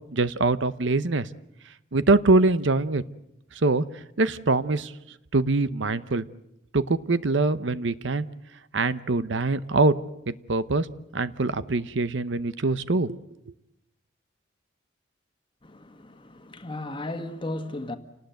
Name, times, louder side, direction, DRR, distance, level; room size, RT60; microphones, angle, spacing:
voice 1, 0.1-1.3 1.9-3.0 3.6-3.8 4.2-4.9 5.3-6.2 6.7-8.3 8.7-9.9 10.3-10.9 11.1-13.2, right 3 dB, 70° right, 0.8 m, -23 dB
voice 2, 15.6-18.0, left 1 dB, 25° left, 1.5 m, -35 dB
28.5 x 19.0 x 7.8 m
head